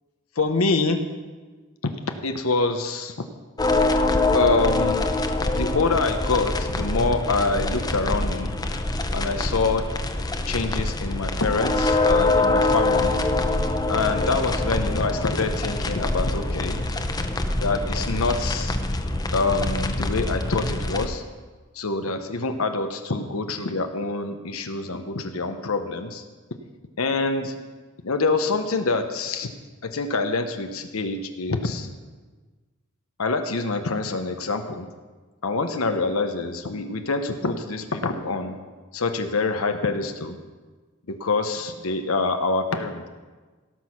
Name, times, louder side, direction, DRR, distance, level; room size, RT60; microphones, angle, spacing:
voice 1, 0.4-1.1 2.2-3.1 4.3-5.1 5.5-8.5 9.1-9.9 10.5-13.2 13.9-16.8 17.6-18.8 19.3-21.2 21.7-26.2 27.0-27.6 28.0-29.5 29.8-31.9 33.2-34.9 35.4-38.6 38.9-40.4 41.1-43.1, left 3 dB, 80° left, 6 dB, 0.9 m, -26 dB
sound 1, 3.6-21.1, left 2 dB, 20° left, 0.7 m, -24 dB
17.5 x 6.3 x 5.8 m, 1.3 s
head